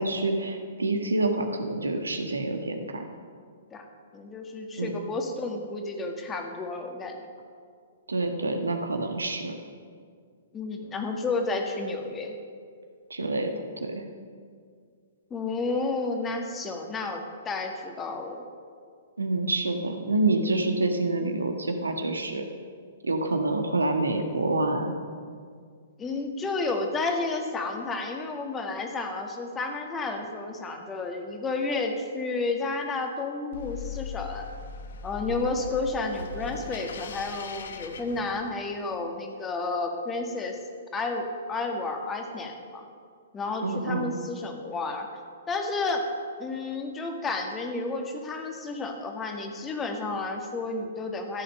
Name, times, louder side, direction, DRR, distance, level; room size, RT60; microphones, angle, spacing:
voice 1, 0.0-3.0 4.8-5.0 8.1-9.6 13.1-14.0 19.2-22.5 23.0-24.9 43.6-44.1, right 2 dB, 85° right, 5 dB, 1.3 m, -27 dB
voice 2, 4.1-7.2 10.5-12.3 15.3-18.4 26.0-34.5 35.0-40.6 40.9-42.8 43.3-45.1 45.5-46.0 46.4-51.4, left 3 dB, 20° left, 3 dB, 1.7 m, -31 dB
sound 1, 33.5-38.8, left 6 dB, 65° left, 1.1 m, -39 dB
13.5 x 8.4 x 6.5 m, 2.1 s
figure-of-eight pair, 115°, 0 cm